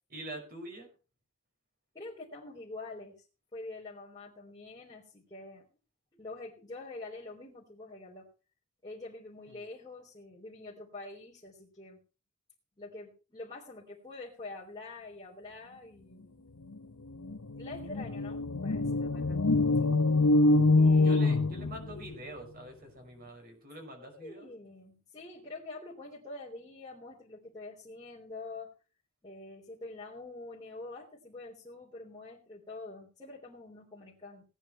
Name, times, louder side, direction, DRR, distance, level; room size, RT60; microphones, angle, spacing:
voice 1, 0.1-0.9 9.5-9.6 19.9-20.0 21.0-24.5, right 1 dB, 45° right, 4 dB, 5.6 m, -45 dB
voice 2, 1.9-3.3 3.5-5.6 6.2-8.3 8.8-12.0 12.8-16.4 17.5-19.4 20.8-21.2 24.0-28.7 29.2-34.4, left 2 dB, 20° left, -6 dB, 3.4 m, -46 dB
sound 1, 16.7-16.8 17.1-22.1, left 2 dB, 70° left, 0.9 m, -25 dB
18.0 x 10.0 x 4.4 m, 0.34 s
head